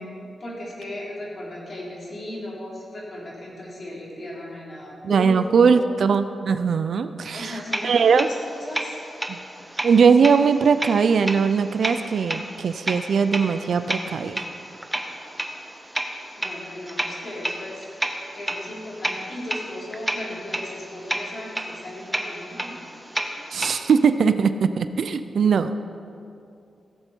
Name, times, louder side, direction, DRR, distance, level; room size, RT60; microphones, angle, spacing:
voice 1, 0.4-5.9 7.3-9.0 16.4-17.9 18.1-22.8, left 1 dB, 40° left, -5 dB, 4.2 m, -36 dB
voice 2, 5.0-8.3 9.3-9.4 9.8-14.5 23.5-25.8, right 6 dB, 60° right, 11 dB, 0.5 m, -20 dB
sound 1, 7.3-23.8, right 1 dB, 10° right, 1.0 m, -32 dB
16.5 x 15.0 x 4.6 m, 2.5 s
wide cardioid pair, 155°, 0 cm